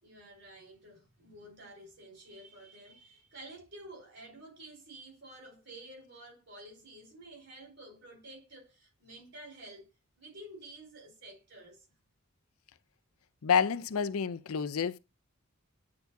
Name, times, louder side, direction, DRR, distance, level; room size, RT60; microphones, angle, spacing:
voice 1, 0.0-9.9 10.2-11.9, right 1 dB, 55° right, 3.9 m, -51 dB
voice 2, 13.4-15.0, left 6 dB, 85° left, 0.5 m, -29 dB
9.4 x 4.5 x 2.6 m
head